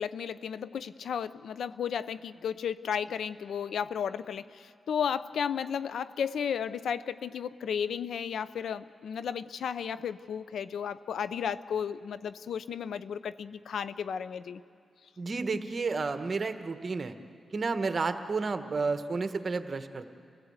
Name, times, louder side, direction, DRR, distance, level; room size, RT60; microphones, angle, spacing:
voice 1, 0.0-14.6, left 7 dB, 80° left, 15 dB, 0.6 m, -34 dB
voice 2, 15.2-17.1 17.5-20.1, right 4 dB, 45° right, 8 dB, 1.3 m, -31 dB
29.0 x 16.5 x 8.0 m, 2.3 s
cardioid pair, 80°, 0 cm